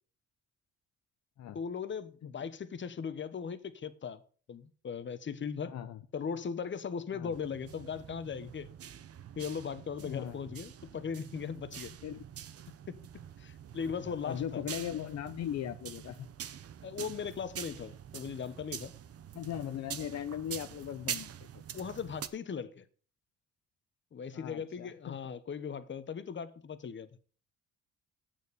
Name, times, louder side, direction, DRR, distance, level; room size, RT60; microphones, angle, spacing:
voice 1, 1.5-4.2 4.5-5.7 6.1-8.7 9.4-11.9 12.9-13.0 13.4-14.6 16.8-18.9 21.7-22.8 24.1-27.1, left 6 dB, 40° left, 1.0 m, -38 dB
voice 2, 5.6-6.0 7.1-7.3 10.0-10.4 12.0-12.2 14.1-16.3 19.3-21.3 24.3-25.2, left 10 dB, 60° left, 0.7 m, -39 dB
sound 1, 7.3-22.3, right 9 dB, 50° right, 0.8 m, -45 dB
9.0 x 6.8 x 6.7 m
cardioid pair, 90°, 30 cm